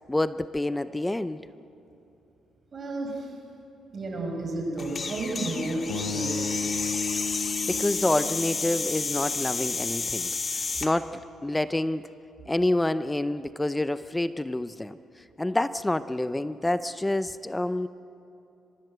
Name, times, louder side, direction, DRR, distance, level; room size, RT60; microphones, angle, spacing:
voice 1, 0.1-1.4 7.1-10.3 10.8-12.1 12.5-17.9, left 1 dB, 10° left, 13 dB, 0.6 m, -28 dB
voice 2, 2.7-3.3 3.9-6.5, right 2 dB, 40° right, 2 dB, 6.0 m, -32 dB
sound 1, 4.8-10.9, left 4 dB, 40° left, 1.9 m, -31 dB
sound 2, 5.9-10.1, left 3 dB, 90° left, 3.0 m, -35 dB
24.0 x 20.5 x 7.9 m, 2.9 s
cardioid pair, 90°, 0 cm